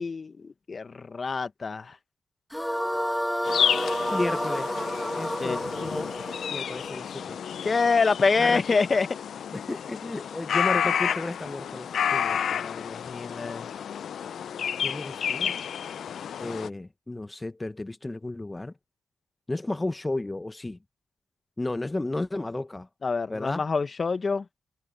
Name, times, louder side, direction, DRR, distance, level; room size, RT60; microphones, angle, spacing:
voice 1, 0.0-2.0 5.4-5.7 7.6-9.1 12.6-13.7 23.0-24.4, left 4 dB, 50° left, 1.4 m, -26 dB
sound 1, 2.5-7.7, equal, ahead, 2.1 m, -30 dB
sound 2, 3.4-16.7, left 8 dB, 75° left, 0.7 m, -30 dB
voice 2, 4.1-4.8 5.1-6.1 6.5-7.4 8.4-8.6 9.5-12.6 14.8-15.6 16.4-18.7 19.5-20.8 21.6-22.9 23.3-23.6, left 2 dB, 25° left, 1.0 m, -33 dB
supercardioid pair, 45°, 0 cm